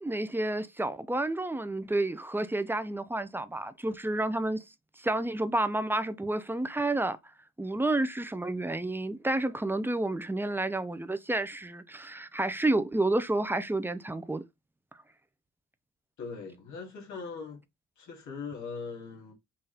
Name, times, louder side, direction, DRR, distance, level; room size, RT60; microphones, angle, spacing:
voice 1, 0.0-4.6 5.0-7.2 7.6-14.4, right 2 dB, 5° right, 0.6 m, -30 dB
voice 2, 16.2-17.6 18.0-19.3, left 5 dB, 70° left, 2.6 m, -40 dB
5.7 x 2.7 x 3.4 m
cardioid pair, 90°, 30 cm